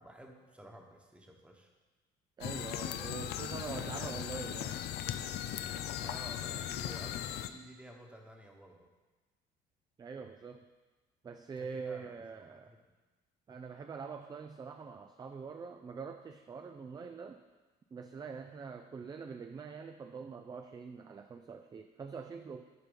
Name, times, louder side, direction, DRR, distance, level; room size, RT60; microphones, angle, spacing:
voice 1, 0.0-1.7 2.9-3.0 3.5-4.2 6.0-8.9 11.6-12.9, equal, 5° right, 2 dB, 1.2 m, -53 dB
sound 1, 2.4-7.5, left 10 dB, 80° left, 0.5 m, -38 dB
voice 2, 2.4-4.8 10.0-10.7 11.2-12.7 13.5-17.4 17.9-22.6, right 5 dB, 25° right, 7 dB, 0.4 m, -44 dB
10.5 x 4.4 x 5.2 m, 1.2 s
cardioid pair, 110°, 17 cm